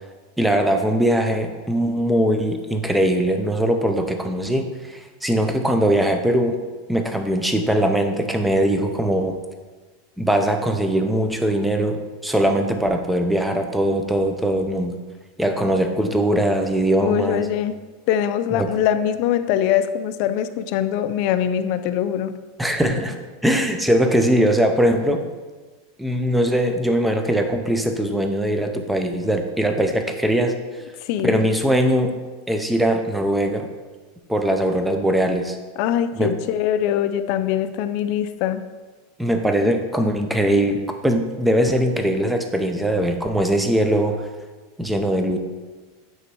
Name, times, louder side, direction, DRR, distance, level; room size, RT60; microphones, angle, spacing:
voice 1, 0.4-6.6 6.9-9.4 10.2-14.9 15.4-17.5 18.5-18.7 22.6-23.2 23.4-25.2 26.0-30.6 31.2-32.2 32.5-33.7 34.3-35.6 36.2-36.4 39.2-44.2 44.8-45.4, right 1 dB, 5° right, 5 dB, 0.5 m, -21 dB
voice 2, 17.0-22.4 31.0-31.4 35.8-38.6, left 10 dB, 50° left, 11 dB, 0.4 m, -23 dB
8.8 x 3.1 x 4.6 m, 1.3 s
supercardioid pair, 155°, 0 cm